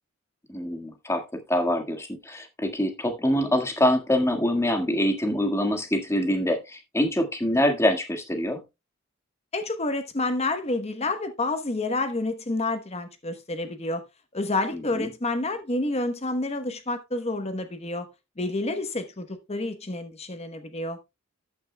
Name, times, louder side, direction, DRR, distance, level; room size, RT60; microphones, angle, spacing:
voice 1, 0.5-1.2 1.5-8.6 14.7-15.1, left 1 dB, 15° left, 1.7 m, -25 dB
voice 2, 9.5-14.0 14.3-18.1 18.4-21.0, left 2 dB, 30° left, 1.0 m, -29 dB
13.0 x 9.3 x 2.2 m
head